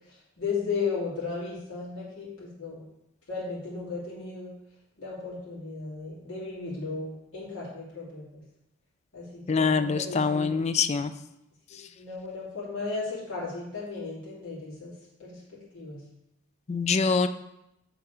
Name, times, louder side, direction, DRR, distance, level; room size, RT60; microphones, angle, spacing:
voice 1, 0.1-2.8 3.3-4.5 5.0-8.4 9.1-10.6 11.7-14.9 15.2-16.0, left 4 dB, 65° left, -9 dB, 2.4 m, -35 dB
voice 2, 9.5-11.1 16.7-17.3, left 5 dB, 30° left, 11 dB, 0.3 m, -24 dB
7.0 x 3.9 x 4.9 m, 0.86 s
head